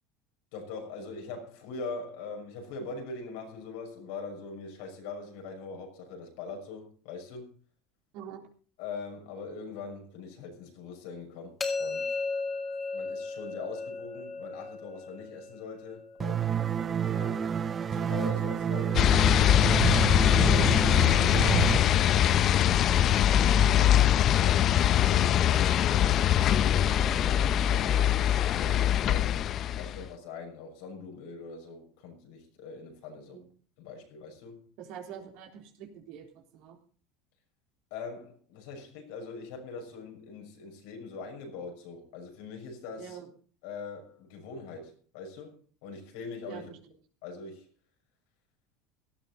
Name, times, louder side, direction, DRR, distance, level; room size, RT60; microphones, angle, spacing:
voice 1, 0.5-7.5 8.8-12.2 12.9-17.4 17.9-19.1 20.3-20.7 21.1-22.9 23.5-26.3 27.7-33.4 33.8-34.6 37.9-43.2 43.6-46.7 47.2-47.7, left 4 dB, 75° left, 3 dB, 6.3 m, -42 dB
sound 1, 11.6-17.4, left 3 dB, 20° left, 3.6 m, -36 dB
sound 2, 16.2-21.8, right 8 dB, 30° right, 0.7 m, -29 dB
sound 3, 18.9-30.1, left 11 dB, 45° left, 0.7 m, -23 dB
voice 2, 34.8-36.3 36.5-36.8 43.0-43.3 46.5-46.8, right 8 dB, 65° right, 2 dB, 3.8 m, -44 dB
17.5 x 12.5 x 4.1 m, 0.41 s
hypercardioid pair, 90°, 0 cm